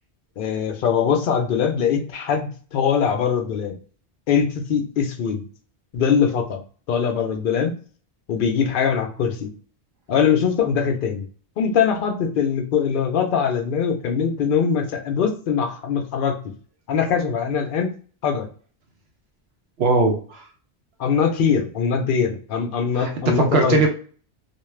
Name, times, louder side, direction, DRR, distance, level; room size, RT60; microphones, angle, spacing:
voice 1, 0.4-3.8 4.3-5.4 5.9-6.6 6.9-7.8 8.3-9.5 10.1-11.3 11.6-16.4 16.9-17.9 18.2-18.5 21.0-23.8, left 7 dB, 60° left, 4 dB, 0.7 m, -22 dB
voice 2, 19.8-20.4 23.0-23.9, right 4 dB, 70° right, 3 dB, 0.9 m, -20 dB
2.4 x 2.3 x 3.1 m, 0.41 s
omnidirectional pair, 1.1 m